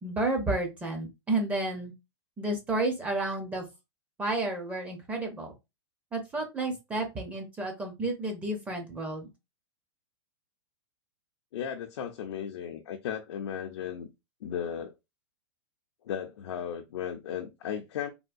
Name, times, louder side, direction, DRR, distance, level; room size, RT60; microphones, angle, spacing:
voice 1, 0.0-1.9 2.4-3.6 4.2-5.5 6.1-9.3, right 2 dB, 10° right, 0.5 m, -31 dB
voice 2, 11.5-14.1 14.4-14.9 16.0-18.1, left 8 dB, 70° left, 0.6 m, -35 dB
3.5 x 2.3 x 2.5 m
supercardioid pair, 165°, 14 cm